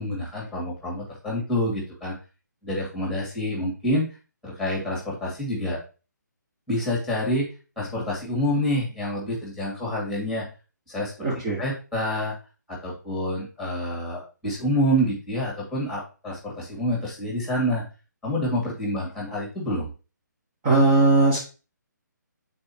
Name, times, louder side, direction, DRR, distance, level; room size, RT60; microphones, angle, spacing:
voice 1, 0.0-2.1 2.6-4.1 4.4-5.8 6.7-7.5 7.8-10.4 10.9-11.1 11.6-12.3 12.7-17.8 18.2-19.9, equal, ahead, -3 dB, 2.3 m, -27 dB
voice 2, 11.2-11.6 20.6-21.4, right 2 dB, 25° right, -3 dB, 1.5 m, -19 dB
8.6 x 4.3 x 2.9 m, 0.34 s
figure-of-eight pair, 140°, 10 cm